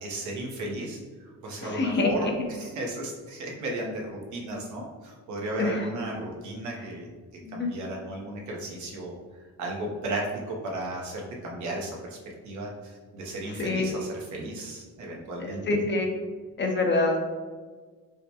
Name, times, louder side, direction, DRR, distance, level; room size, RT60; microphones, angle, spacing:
voice 1, 0.0-7.1 7.5-9.1 9.6-12.2 12.4-15.6, right 1 dB, 70° right, -1 dB, 0.9 m, -34 dB
voice 2, 1.6-2.3 5.6-5.9 7.4-7.7 13.6-13.9 15.4-16.1 16.6-17.2, left 2 dB, 35° left, 2 dB, 0.7 m, -26 dB
4.8 x 2.2 x 2.8 m, 1.4 s
cardioid pair, 90°, 30 cm